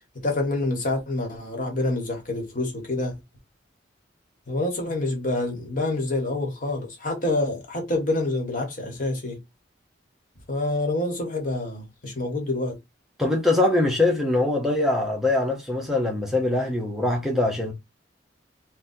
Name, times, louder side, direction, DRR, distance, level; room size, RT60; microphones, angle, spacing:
voice 1, 0.2-3.2 4.5-9.4 10.5-12.8, left 2 dB, 45° left, 1.2 m, -27 dB
voice 2, 13.2-17.7, left 2 dB, ahead, 0.7 m, -23 dB
4.0 x 2.2 x 2.6 m
head